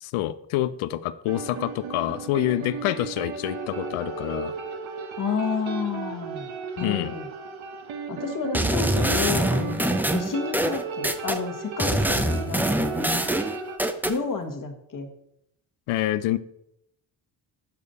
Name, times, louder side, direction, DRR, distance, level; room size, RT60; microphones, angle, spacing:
voice 1, 0.0-4.5 6.8-7.1 15.9-16.4, left 14 dB, 90° left, 15 dB, 0.5 m, -27 dB
sound 1, 1.3-13.8, right 5 dB, 70° right, 1.0 m, -35 dB
voice 2, 5.2-6.5 6.8-7.3 8.1-13.3 14.0-15.1, left 5 dB, 40° left, 4 dB, 1.3 m, -30 dB
sound 2, 8.5-11.4 11.8-14.2, right 1 dB, 5° right, 0.5 m, -24 dB
7.0 x 4.8 x 4.1 m, 0.77 s
cardioid pair, 70°, 48 cm